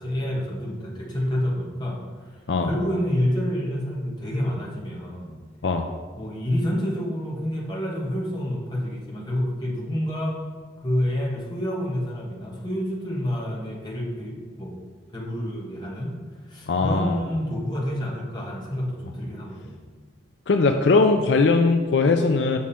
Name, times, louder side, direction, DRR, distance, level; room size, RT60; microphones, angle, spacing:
voice 1, 0.0-5.4 6.2-10.4 10.8-14.7 15.1-16.1 16.5-19.9, equal, 25° left, -3 dB, 1.5 m, -28 dB
voice 2, 16.7-17.2 20.5-22.6, left 3 dB, 65° left, 5 dB, 0.5 m, -20 dB
7.3 x 6.1 x 4.3 m, 1.5 s
head